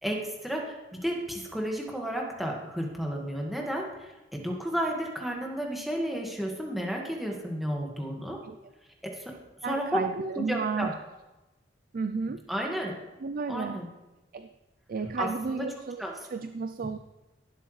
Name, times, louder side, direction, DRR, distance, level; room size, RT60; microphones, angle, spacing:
voice 1, 0.0-8.4 9.2-9.3 9.6-10.1 10.3-10.9 12.5-12.9 13.5-13.9 15.2-15.7 16.0-16.1, equal, ahead, -1 dB, 1.7 m, -32 dB
voice 2, 9.6-10.9 11.9-12.4 13.2-13.8 14.3-14.5 14.9-16.0 16.3-17.0, right 4 dB, 50° right, 9 dB, 0.4 m, -32 dB
16.0 x 8.0 x 3.2 m, 1.0 s
head